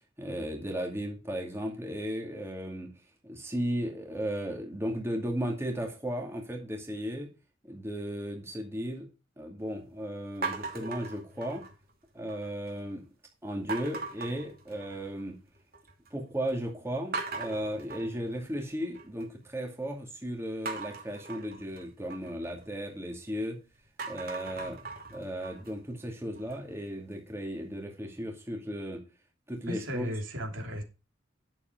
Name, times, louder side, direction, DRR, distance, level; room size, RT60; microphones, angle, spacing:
voice 1, 0.2-2.9 3.2-7.3 7.6-9.1 9.4-11.6 12.1-13.0 13.4-15.4 16.1-23.6 24.1-24.8 25.1-29.0 29.5-30.1, equal, 15° right, 2.4 m, -35 dB
sound 1, 10.4-11.9 12.3-12.8 13.7-15.2 15.5-16.1 16.5-16.6 17.1-19.3 20.7-23.5 23.8-26.8, right 3 dB, 50° right, 2.7 m, -40 dB
voice 2, 29.7-30.8, equal, 80° right, 3.2 m, -35 dB
11.0 x 7.3 x 4.7 m
head